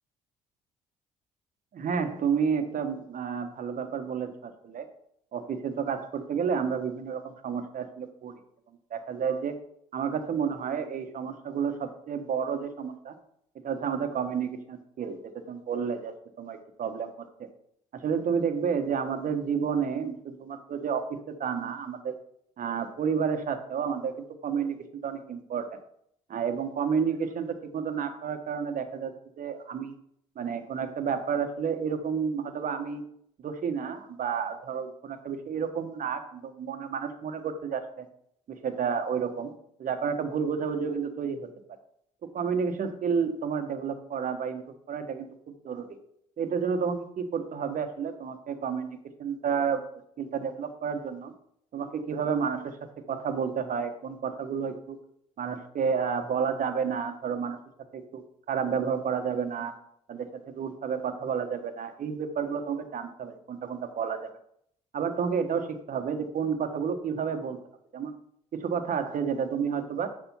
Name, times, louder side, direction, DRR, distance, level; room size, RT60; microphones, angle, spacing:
voice 1, 1.7-4.8 5.3-8.4 8.9-9.5 9.9-13.1 13.6-15.2 15.5-17.5 17.9-22.1 22.6-24.8 25.0-25.7 26.3-30.0 30.3-33.0 33.4-38.1 38.5-39.5 39.8-41.4 42.3-45.9 46.4-49.8 50.2-51.3 51.7-52.8 53.1-55.0 55.4-57.6 57.9-59.7 60.1-64.3 64.9-67.6 67.9-68.1 68.5-70.1, right 6 dB, 50° right, 8 dB, 1.3 m, -31 dB
7.1 x 5.0 x 5.6 m, 0.70 s
hypercardioid pair, 50°, 18 cm